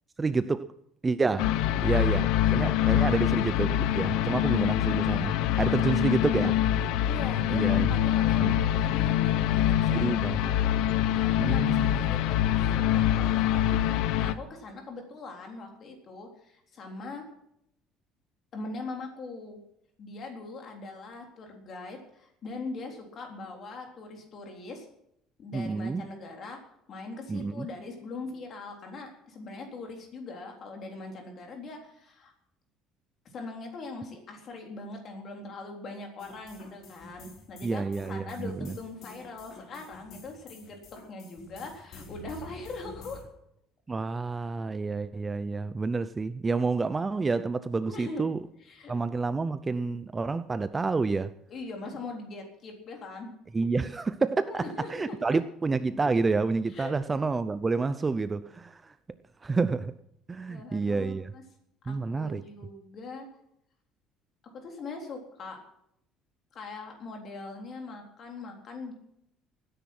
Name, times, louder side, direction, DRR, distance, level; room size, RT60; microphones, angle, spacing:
voice 1, 0.2-0.7 1.0-1.5 1.8-6.6 7.5-7.9 8.4-8.6 9.9-10.5 11.4-12.0 25.5-26.0 27.3-27.7 37.6-38.7 43.9-48.4 48.9-51.3 53.5-58.9 59.4-59.9 60.3-61.3 61.9-62.4, right 4 dB, 15° right, 0.5 m, -29 dB
sound 1, 1.4-14.3, left 11 dB, 75° left, 0.8 m, -25 dB
voice 2, 7.0-10.2 10.4-10.6 11.2-17.3 18.5-19.6 20.0-24.9 25.4-26.6 26.9-32.3 33.3-37.8 38.1-40.8 41.1-43.3 47.9-48.3 48.6-48.9 51.5-53.3 54.5-55.4 56.7-57.2 60.5-61.4 61.8-63.3 64.5-65.6 66.5-68.9, left 3 dB, 35° left, 3.7 m, -41 dB
sound 2, 36.2-43.2, left 2 dB, 55° left, 3.9 m, -48 dB
19.5 x 10.0 x 6.0 m
cardioid pair, 165°, 0 cm